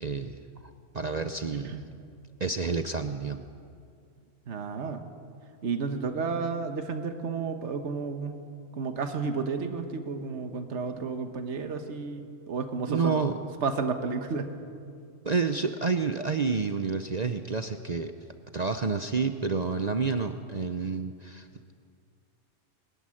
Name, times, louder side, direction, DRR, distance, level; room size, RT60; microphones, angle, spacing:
voice 1, 0.0-0.4 0.9-1.8 2.4-3.4 12.9-13.4 15.2-18.1 18.5-21.5, right 4 dB, 40° right, 8 dB, 0.7 m, -29 dB
voice 2, 4.5-5.0 5.6-8.4 8.8-13.2 13.6-14.5, right 4 dB, 65° right, 7 dB, 1.6 m, -32 dB
21.5 x 14.0 x 9.9 m, 2.3 s
omnidirectional pair, 1.3 m